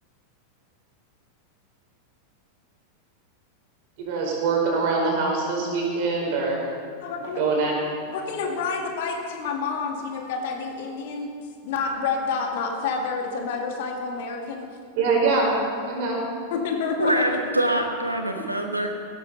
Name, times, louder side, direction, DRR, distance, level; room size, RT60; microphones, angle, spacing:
voice 1, 4.0-6.7 7.4-7.7 14.9-15.5 15.9-16.2, right 4 dB, 45° right, -1 dB, 4.9 m, -23 dB
voice 2, 7.0-7.4 8.1-11.3 11.6-14.6 16.5-17.4, left 5 dB, 55° left, 2 dB, 2.3 m, -28 dB
voice 3, 17.0-19.0, right 1 dB, 85° right, 4 dB, 1.1 m, -24 dB
17.0 x 13.0 x 5.5 m, 2.2 s
figure-of-eight pair, 90°, 0 cm